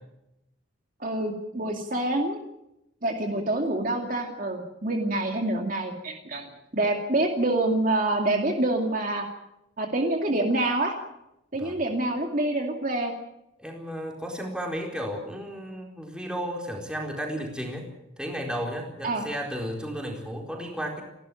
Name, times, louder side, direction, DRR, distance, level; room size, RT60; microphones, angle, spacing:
voice 1, 1.0-2.4 3.0-9.2 9.8-10.9 11.5-13.1 19.0-19.2, right 2 dB, 40° right, 2 dB, 2.4 m, -26 dB
voice 2, 13.6-17.9 18.2-21.0, equal, 5° right, 1 dB, 4.3 m, -33 dB
29.5 x 12.5 x 9.1 m, 0.88 s
head